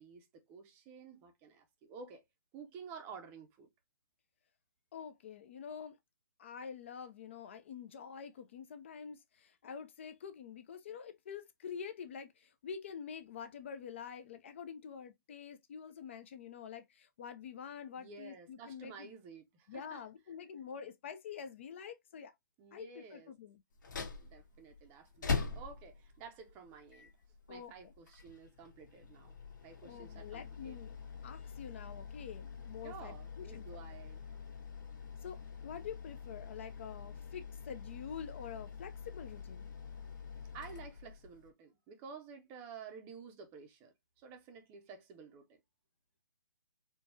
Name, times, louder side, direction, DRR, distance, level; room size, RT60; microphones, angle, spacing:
voice 1, 0.0-2.2 2.5-3.7 18.0-20.0 22.6-23.3 24.2-27.1 27.5-29.4 29.6-30.8 32.8-34.3 40.5-45.6, right 5 dB, 15° right, 0.6 m, -52 dB
voice 2, 4.9-6.0 6.4-19.1 19.7-22.3 22.7-23.6 27.5-27.7 29.8-31.0 31.2-33.6 35.2-39.7, left 7 dB, 35° left, 0.4 m, -47 dB
sound 1, 23.7-41.5, left 5 dB, 65° left, 1.5 m, -44 dB
4.5 x 2.3 x 2.7 m
hypercardioid pair, 160°, 11 cm